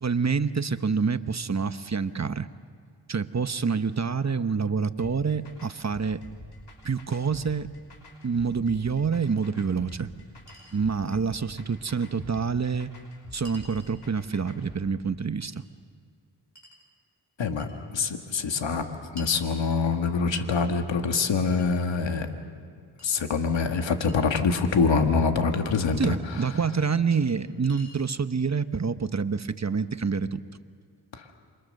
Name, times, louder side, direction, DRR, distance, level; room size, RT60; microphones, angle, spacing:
voice 1, 0.0-2.5 3.1-6.2 6.8-7.7 8.2-10.1 10.7-12.9 13.3-15.7 26.0-30.4, right 5 dB, 40° right, 11 dB, 1.0 m, -27 dB
sound 1, 5.0-14.8, left 2 dB, 60° left, 5.7 m, -47 dB
Chink clink, 9.5-9.6 10.5-10.8 12.0-12.1 13.5-14.0 15.4-15.5 16.6-16.8 17.6-17.8 19.2-19.4 20.6-20.7 21.6-22.3 23.0-23.1 24.1-24.2 25.9-26.0 27.3-27.4 27.6-28.1, left 1 dB, 40° left, 7.6 m, -50 dB
voice 2, 17.9-18.9 19.1-22.3 23.0-26.5 31.1-31.3, left 4 dB, 90° left, 5 dB, 1.8 m, -25 dB
28.5 x 25.5 x 6.6 m, 2.2 s
cardioid pair, 50°, 44 cm